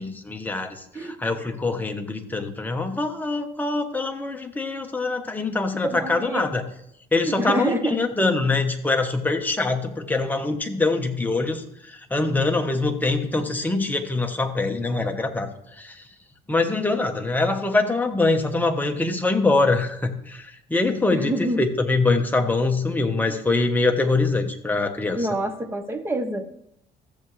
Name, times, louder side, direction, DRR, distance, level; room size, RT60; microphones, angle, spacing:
voice 1, 0.0-6.6 7.1-16.0 16.5-25.3, left 3 dB, 10° left, 4 dB, 1.1 m, -24 dB
voice 2, 5.8-6.4 7.2-8.0 21.1-21.6 25.1-26.7, right 1 dB, 15° right, 7 dB, 1.1 m, -27 dB
14.5 x 7.1 x 3.2 m, 0.76 s
cardioid pair, 110°, 17 cm